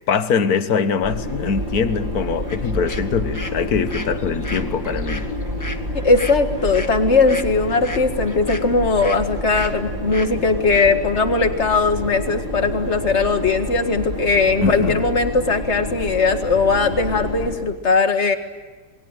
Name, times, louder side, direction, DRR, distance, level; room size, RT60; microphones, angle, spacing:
voice 1, 0.1-5.3 14.6-15.0, left 6 dB, 55° left, 1.7 m, -22 dB
sound 1, 1.0-17.6, left 1 dB, 30° right, 7.1 m, -29 dB
sound 2, 2.5-2.6 2.9-9.2 9.5-9.7 10.1-10.3 10.7-10.9, left 1 dB, 10° left, 1.2 m, -34 dB
voice 2, 6.0-18.4, left 4 dB, 35° left, 2.0 m, -19 dB
28.0 x 21.5 x 9.1 m
omnidirectional pair, 2.0 m